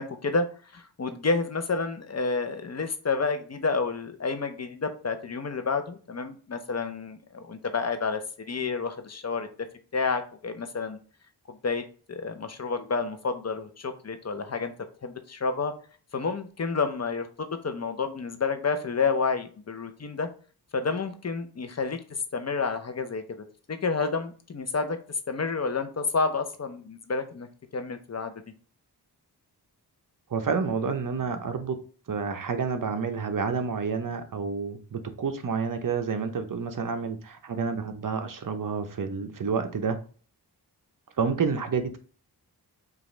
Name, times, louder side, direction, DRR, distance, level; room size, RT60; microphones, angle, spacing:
voice 1, 0.0-8.2 8.5-9.5 9.9-11.0 11.5-14.7 15.0-15.7 16.1-20.3 20.7-22.0 22.3-25.0 25.3-27.5 27.7-28.3, left 4 dB, 40° left, 0.7 m, -30 dB
voice 2, 30.3-31.8 32.1-40.0 41.2-42.0, right 5 dB, 50° right, 0.7 m, -29 dB
5.1 x 2.5 x 3.1 m
wide cardioid pair, 70°, 41 cm